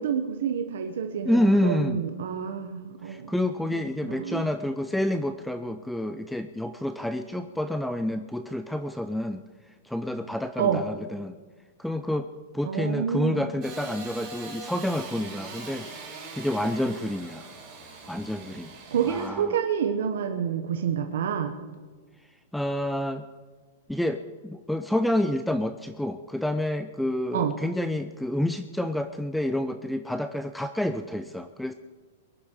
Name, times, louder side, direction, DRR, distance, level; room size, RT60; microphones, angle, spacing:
voice 1, 0.0-3.3 4.0-4.5 10.6-10.8 12.6-13.5 18.9-21.6 27.3-27.6, right 7 dB, 75° right, 5 dB, 1.3 m, -28 dB
voice 2, 1.3-2.0 3.0-9.4 9.8-11.4 11.8-12.3 12.5-15.9 16.3-17.5 18.1-18.7 19.0-19.5 22.5-23.2 23.9-31.7, left 1 dB, ahead, 10 dB, 0.4 m, -28 dB
Engine starting / Sawing, 13.6-19.3, right 4 dB, 25° right, 5.6 m, -42 dB
21.5 x 11.0 x 4.8 m, 1.4 s
supercardioid pair, 160°, 0 cm